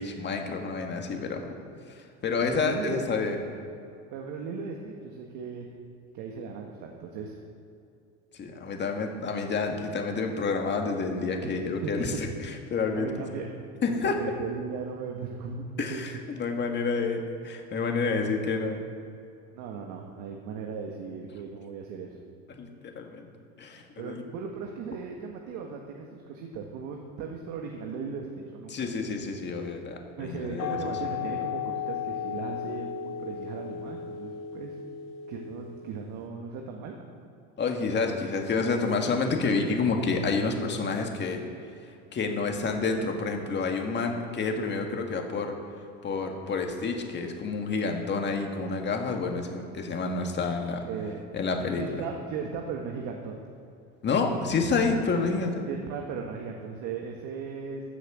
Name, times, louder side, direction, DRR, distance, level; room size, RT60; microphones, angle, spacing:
voice 1, 0.0-1.5 1.9-3.4 8.3-13.1 13.8-14.2 15.8-18.8 22.5-23.3 23.6-24.2 28.7-30.8 37.6-41.5 41.8-45.6 46.0-50.8 51.3-52.0 54.0-55.7, left 4 dB, 30° left, 3 dB, 2.0 m, -29 dB
voice 2, 2.3-3.1 4.1-5.7 6.1-7.4 11.4-12.2 12.9-13.5 13.9-16.0 18.0-18.4 19.5-22.2 23.7-28.9 30.2-34.8 35.3-36.9 50.9-51.2 51.8-53.4 55.1-55.3 55.7-57.8, right 5 dB, 60° right, 1 dB, 1.7 m, -37 dB
sound 1, 30.6-36.0, left 8 dB, 50° left, 1.2 m, -35 dB
14.5 x 6.6 x 8.0 m, 2.6 s
supercardioid pair, 110°, 34 cm